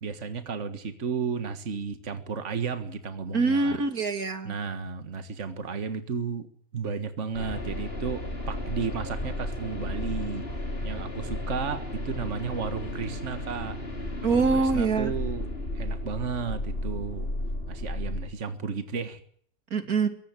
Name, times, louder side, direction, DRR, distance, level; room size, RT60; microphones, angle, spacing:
voice 1, 0.0-3.8 4.4-6.5 6.7-10.5 10.8-13.8 14.3-15.5 15.8-17.3 17.7-19.2, right 5 dB, 55° right, 9 dB, 1.9 m, -33 dB
voice 2, 3.3-4.6 14.2-15.1 19.7-20.1, right 4 dB, 90° right, 8 dB, 3.1 m, -24 dB
sound 1, 7.3-18.2, left 1 dB, 40° left, 4.5 m, -33 dB
23.0 x 17.0 x 9.0 m, 0.62 s
omnidirectional pair, 1.5 m